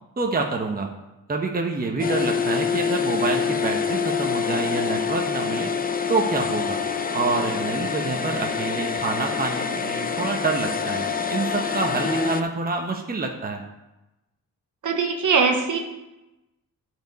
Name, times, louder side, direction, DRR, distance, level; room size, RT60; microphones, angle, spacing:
voice 1, 0.2-0.9 1.3-5.7 6.1-6.8 7.1-13.6, right 3 dB, 25° right, 2 dB, 1.0 m, -27 dB
sound 1, 2.0-12.4, left 6 dB, 25° left, 0.6 m, -26 dB
voice 2, 14.8-15.8, right 5 dB, 65° right, 3 dB, 1.4 m, -21 dB
11.5 x 4.7 x 5.3 m, 0.99 s
cardioid pair, 95°, 34 cm